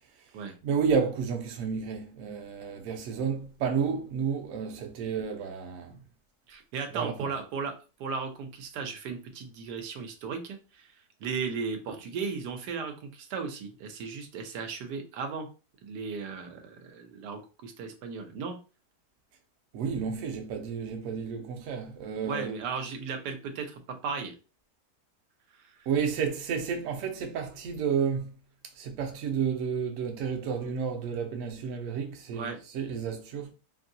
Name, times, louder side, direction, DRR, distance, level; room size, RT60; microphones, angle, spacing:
voice 1, 0.6-6.0 6.9-7.2 19.7-22.6 25.9-28.4 28.8-33.5, right 6 dB, 65° right, 0.9 m, -31 dB
voice 2, 6.5-7.7 8.0-10.9 11.2-15.5 15.8-18.6 22.3-24.3 25.6-25.9 32.3-32.6, right 5 dB, 85° right, 1.2 m, -36 dB
2.9 x 2.6 x 2.6 m
omnidirectional pair, 1.7 m